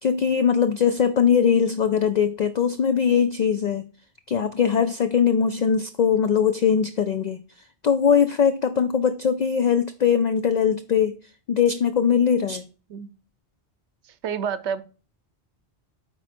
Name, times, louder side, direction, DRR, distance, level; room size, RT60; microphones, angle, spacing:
voice 1, 0.0-3.9 4.3-7.4 7.8-11.2 11.5-12.6, left 7 dB, 55° left, 0.5 m, -21 dB
voice 2, 14.2-14.8, right 7 dB, 85° right, 1.0 m, -28 dB
9.1 x 4.0 x 4.3 m
omnidirectional pair, 1.1 m